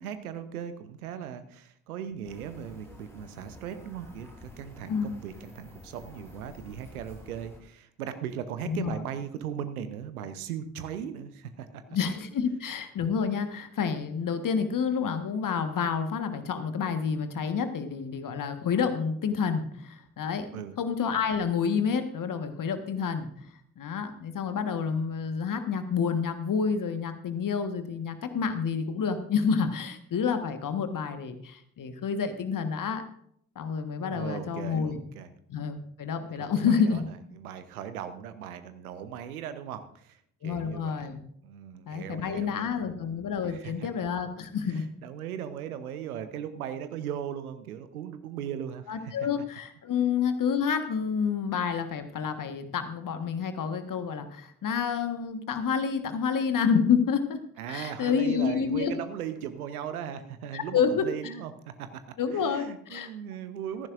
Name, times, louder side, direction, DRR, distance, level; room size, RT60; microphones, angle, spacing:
voice 1, 0.0-11.8 20.5-20.8 34.1-35.3 36.4-40.9 41.4-43.0 43.5-43.9 45.0-49.1 57.6-61.5 61.8-62.0 62.3-63.9, right 9 dB, 80° right, 11 dB, 0.9 m, -38 dB
sound 1, 2.2-7.6, left 1 dB, 5° left, 5.9 m, -49 dB
voice 2, 4.9-5.2 8.6-8.9 11.9-20.5 20.8-23.3 23.8-33.0 33.5-35.0 35.5-37.1 40.4-41.2 41.9-44.8 48.9-57.4 57.7-58.9 60.5-61.3 62.2-63.1, left 6 dB, 45° left, 8 dB, 1.5 m, -29 dB
16.5 x 14.5 x 2.6 m, 0.66 s
figure-of-eight pair, 40°, 43 cm